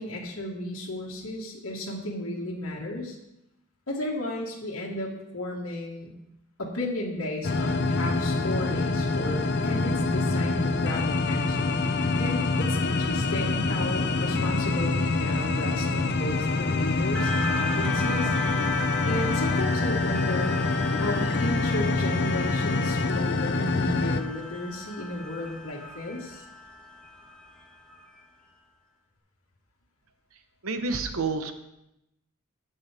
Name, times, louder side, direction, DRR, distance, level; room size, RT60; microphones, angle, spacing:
voice 1, 0.0-3.2 3.9-6.1 6.6-18.3 19.0-20.6 20.9-26.4, left 1 dB, 70° left, -3 dB, 1.7 m, -34 dB
sound 1, 7.4-24.2, left 3 dB, 55° left, 0.6 m, -26 dB
sound 2, 17.1-28.0, left 2 dB, 5° left, 1.3 m, -35 dB
voice 2, 30.6-31.5, right 4 dB, 80° right, 8 dB, 0.9 m, -29 dB
11.5 x 7.8 x 3.4 m, 0.87 s
head